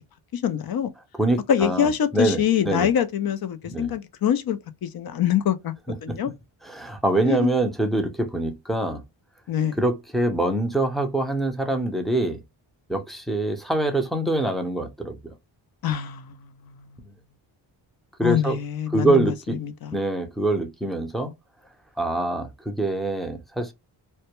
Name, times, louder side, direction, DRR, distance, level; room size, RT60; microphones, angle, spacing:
voice 1, 0.3-0.9 1.5-5.7 6.0-6.3 7.2-7.5 9.5-9.8 15.8-16.9 18.2-20.0, left 9 dB, 50° left, 0.5 m, -25 dB
voice 2, 1.2-1.9 2.1-2.9 3.7-3.9 6.1-6.2 6.7-9.0 9.8-12.4 12.9-15.3 18.2-18.6 18.9-19.6 19.9-21.3 22.0-23.7, right 2 dB, ahead, 0.5 m, -24 dB
2.2 x 2.1 x 2.9 m
cardioid pair, 70°, 47 cm